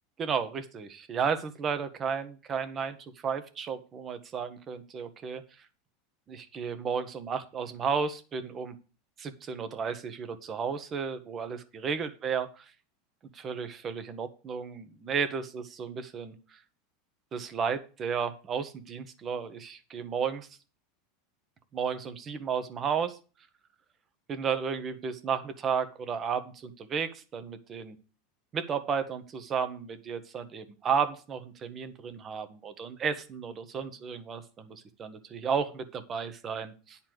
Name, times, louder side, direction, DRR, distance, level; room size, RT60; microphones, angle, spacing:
voice 1, 0.2-3.0 3.2-5.4 6.3-8.7 9.2-12.5 13.3-16.6 17.3-20.5 21.7-23.2 24.3-28.0 28.5-37.0, right 6 dB, 30° right, 10 dB, 1.3 m, -33 dB
10.5 x 4.4 x 7.8 m, 0.35 s
supercardioid pair, 125°, 0 cm